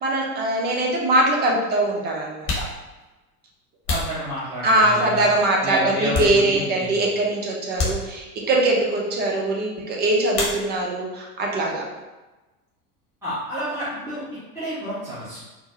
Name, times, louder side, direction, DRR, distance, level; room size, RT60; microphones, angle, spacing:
voice 1, 0.0-2.6 4.6-11.8, right 1 dB, 20° right, -1 dB, 0.6 m, -22 dB
sound 1, 0.6-0.7 1.6-1.7 2.3-4.9 5.5-6.8 7.1-7.3 7.7-8.6 10.3-11.1 11.4-12.1 12.3-14.5, left 3 dB, 30° left, 1.0 m, -31 dB
voice 2, 3.9-5.3 5.6-7.1 13.2-14.2 14.5-15.4, right 1 dB, 5° right, -14 dB, 1.2 m, -30 dB
4.3 x 2.1 x 2.8 m, 1.1 s
figure-of-eight pair, 80°, 46 cm